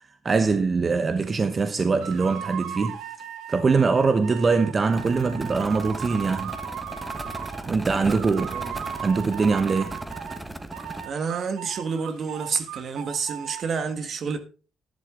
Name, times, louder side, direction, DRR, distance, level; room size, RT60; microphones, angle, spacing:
voice 1, 0.0-3.0 3.5-6.6 7.6-8.6 9.0-9.9, right 4 dB, 35° right, 1.0 m, -23 dB
sound 1, 2.0-7.7 8.1-10.4 10.7-13.6, right 9 dB, 85° right, 1.5 m, -37 dB
sound 2, 4.9-11.1, right 1 dB, 15° right, 1.4 m, -37 dB
voice 2, 11.0-14.5, right 5 dB, 55° right, 1.6 m, -29 dB
11.5 x 11.0 x 3.8 m
cardioid pair, 90°, 0 cm